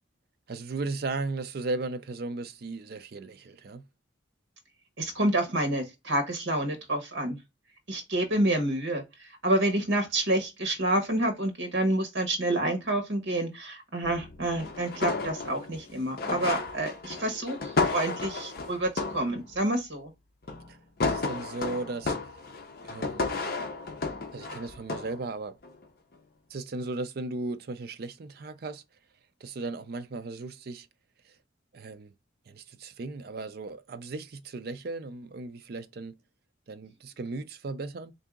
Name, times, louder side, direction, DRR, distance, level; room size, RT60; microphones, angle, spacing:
voice 1, 0.5-3.8 20.7-22.2 22.8-23.4 24.3-25.6 26.5-28.8 29.4-30.9 31.2-31.3 31.7-32.1 32.5-36.2 36.7-38.1, right 3 dB, 50° right, 0.4 m, -36 dB
voice 2, 5.0-7.4 7.9-20.1, right 1 dB, 75° right, 1.1 m, -28 dB
sound 1, 14.0-19.6 20.5-20.7 21.0-25.2 25.6-25.8, left 3 dB, 50° left, 0.6 m, -33 dB
3.7 x 2.7 x 3.5 m
head